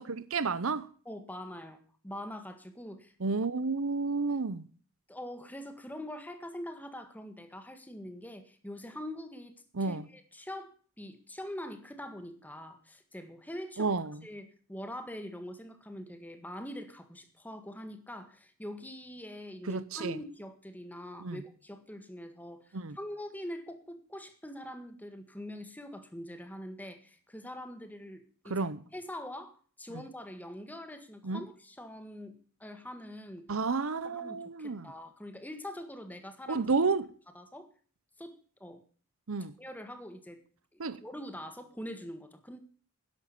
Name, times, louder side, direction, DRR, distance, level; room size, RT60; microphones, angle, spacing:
voice 1, 0.0-0.9 3.2-4.7 9.7-10.1 13.8-14.2 19.7-20.2 21.2-21.4 22.7-23.0 28.5-28.8 31.2-31.4 33.5-34.9 36.5-37.1 39.3-39.5 40.8-41.0, right 4 dB, 65° right, 0.8 m, -31 dB
voice 2, 1.1-3.1 5.1-9.5 9.8-13.9 14.2-32.4 32.6-33.5 34.0-36.6 37.4-37.7 38.2-38.8 39.6-40.4 40.7-42.6, left 1 dB, 5° left, 1.7 m, -44 dB
12.5 x 10.5 x 6.8 m
head